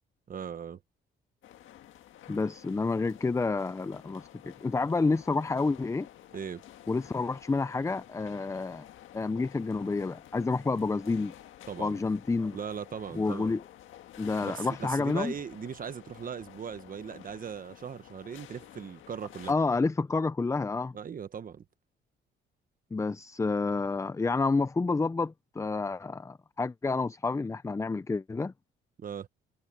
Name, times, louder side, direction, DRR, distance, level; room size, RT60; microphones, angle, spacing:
voice 1, 0.3-0.8 6.3-6.6 11.7-12.0 12.5-13.6 14.4-19.5 20.9-21.6 29.0-29.3, right 7 dB, 45° right, 1.2 m, -39 dB
sound 1, 1.4-19.5, left 12 dB, 80° left, 1.6 m, -51 dB
voice 2, 2.3-6.1 6.9-8.8 9.1-11.3 11.8-12.6 13.1-13.6 14.2-15.3 19.5-21.0 22.9-28.5, left 3 dB, 15° left, 0.5 m, -29 dB
cardioid pair, 90°, 20 cm